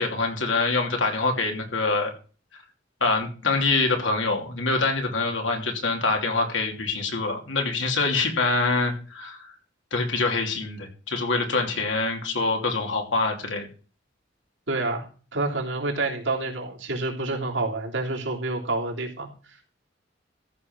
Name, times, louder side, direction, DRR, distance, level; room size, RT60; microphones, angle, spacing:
voice 1, 0.0-2.1 3.0-9.4 9.9-13.7, left 3 dB, 85° left, 3 dB, 2.9 m, -25 dB
voice 2, 14.7-15.1 15.3-19.3, right 2 dB, 90° right, -1 dB, 3.2 m, -28 dB
14.0 x 5.5 x 6.1 m, 0.38 s
head